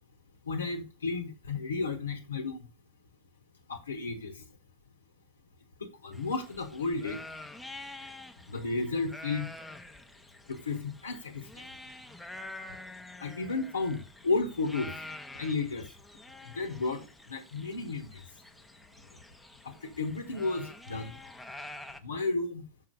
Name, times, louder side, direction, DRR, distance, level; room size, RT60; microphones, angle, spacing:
voice 1, 0.4-2.7 3.7-4.4 5.8-7.2 8.5-9.5 10.5-11.7 13.2-15.0 15.3-15.9 16.4-18.4 19.6-21.2 22.0-22.7, left 3 dB, 75° left, 1.0 m, -33 dB
sound 1, 6.1-22.0, left 2 dB, 5° left, 0.8 m, -47 dB
6.6 x 5.6 x 5.2 m
figure-of-eight pair, 90°, 0 cm